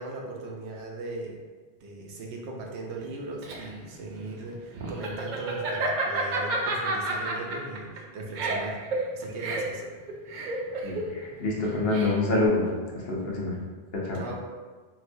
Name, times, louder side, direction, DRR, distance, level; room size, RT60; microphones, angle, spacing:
voice 1, 0.0-1.4 1.8-8.8 9.1-9.8 14.1-14.5, right 2 dB, 85° right, 0 dB, 0.9 m, -38 dB
Laughter, 3.0-12.5, right 2 dB, 60° right, 0.5 m, -31 dB
voice 2, 10.8-12.7 12.9-13.6 13.9-14.2, left 2 dB, 65° left, -3 dB, 0.9 m, -26 dB
4.0 x 2.2 x 2.6 m, 1.4 s
omnidirectional pair, 1.1 m